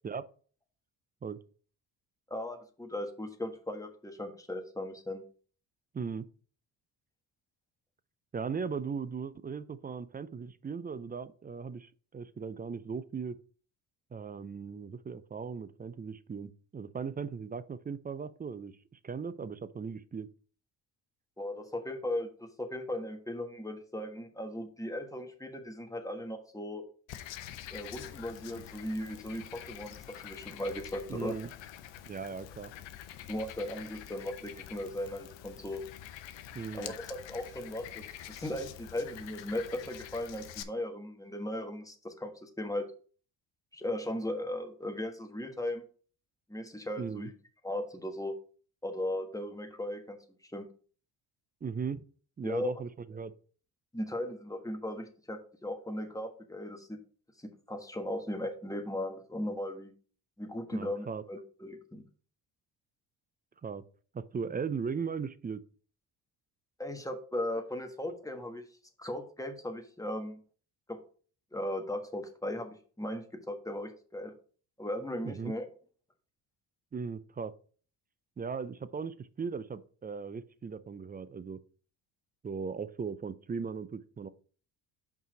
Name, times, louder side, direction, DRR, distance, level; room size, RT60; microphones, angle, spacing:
voice 1, 2.3-5.2 21.4-26.8 27.7-31.4 33.3-35.8 36.7-42.9 43.7-45.8 46.5-47.3 47.6-48.4 48.8-50.2 50.4-50.7 52.4-52.7 53.9-57.0 57.4-59.9 60.4-62.0 66.8-68.6 69.0-70.4 70.9-71.0 71.5-74.3 74.8-75.7, left 1 dB, 5° left, 4 dB, 1.4 m, -37 dB
voice 2, 5.9-6.3 8.3-13.4 14.1-18.7 19.0-20.3 31.1-31.5 32.1-32.7 36.5-36.9 47.0-47.3 51.6-52.0 52.4-53.3 60.7-61.2 63.6-63.8 64.1-65.6 75.2-75.5 76.9-77.5 78.4-81.6 82.4-84.3, right 5 dB, 20° right, 16 dB, 0.4 m, -38 dB
Frog, 27.1-40.6, left 11 dB, 60° left, 0.8 m, -47 dB
5.5 x 4.8 x 5.1 m, 0.42 s
supercardioid pair, 60°, 50 cm